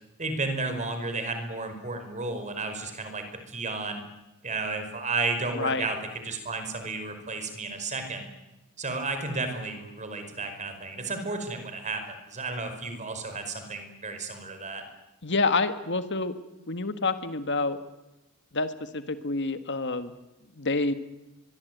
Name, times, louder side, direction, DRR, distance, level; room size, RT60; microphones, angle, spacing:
voice 1, 0.2-4.0 4.4-8.3 8.8-14.8, right 3 dB, 35° right, 7 dB, 5.1 m, -33 dB
voice 2, 5.5-5.9 15.2-16.3 16.7-17.8 18.5-20.1 20.6-20.9, left 3 dB, 55° left, 10 dB, 1.8 m, -28 dB
23.5 x 22.5 x 9.4 m, 0.99 s
head